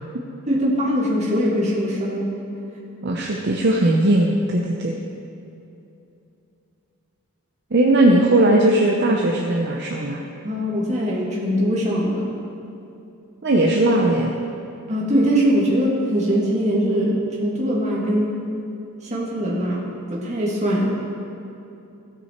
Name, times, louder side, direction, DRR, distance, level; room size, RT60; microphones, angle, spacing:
voice 1, 0.5-2.3 10.4-12.3 14.9-18.4 19.0-20.9, equal, 35° right, -5 dB, 2.2 m, -22 dB
voice 2, 3.0-5.0 7.7-10.2 13.4-14.3, right 1 dB, 50° right, 0 dB, 0.7 m, -18 dB
16.0 x 6.2 x 4.5 m, 2.8 s
head